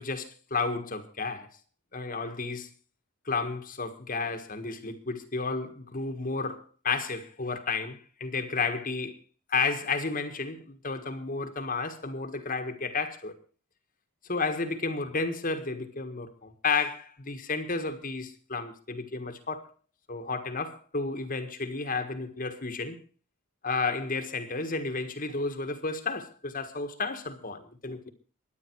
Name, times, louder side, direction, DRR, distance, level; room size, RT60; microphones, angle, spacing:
voice 1, 0.0-1.5 1.9-2.7 3.2-9.2 9.5-13.3 14.3-19.7 20.1-23.0 23.6-28.1, left 4 dB, 35° left, 1.6 m, -32 dB
23.5 x 9.6 x 4.6 m
head